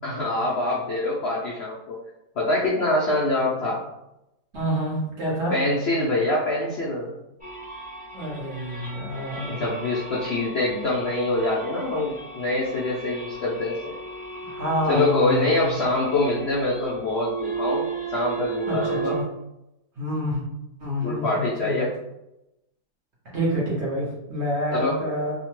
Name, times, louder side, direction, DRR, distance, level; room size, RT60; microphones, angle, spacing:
voice 1, 0.0-2.0 2.4-3.8 5.5-7.1 9.5-13.9 14.9-19.1 21.0-21.9 24.7-25.0, left 2 dB, 70° left, -5 dB, 0.6 m, -25 dB
voice 2, 4.5-5.5 8.1-9.6 14.4-15.8 18.6-19.2 20.0-20.4 20.8-21.9 23.2-25.3, equal, 55° right, -5 dB, 0.9 m, -28 dB
sound 1, 7.4-19.2, right 4 dB, 10° right, 0.5 m, -35 dB
2.8 x 2.1 x 3.0 m, 0.89 s
omnidirectional pair, 1.8 m